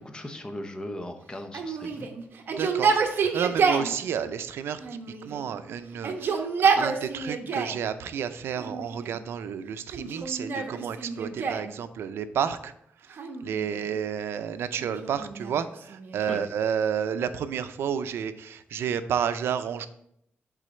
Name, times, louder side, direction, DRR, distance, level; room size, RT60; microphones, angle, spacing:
voice 1, 0.0-2.1 16.3-16.4, left 1 dB, 20° left, 6 dB, 0.8 m, -38 dB
Yell, 1.5-3.9 4.8-5.6 5.9-7.8 8.6-9.2 9.9-11.7 13.1-14.0 14.8-16.5, right 5 dB, 60° right, 0.9 m, -28 dB
voice 2, 2.5-4.8 5.2-12.7 13.4-19.9, right 8 dB, 90° right, 11 dB, 0.4 m, -31 dB
8.1 x 3.8 x 4.2 m, 0.73 s
cardioid pair, 115°, 4 cm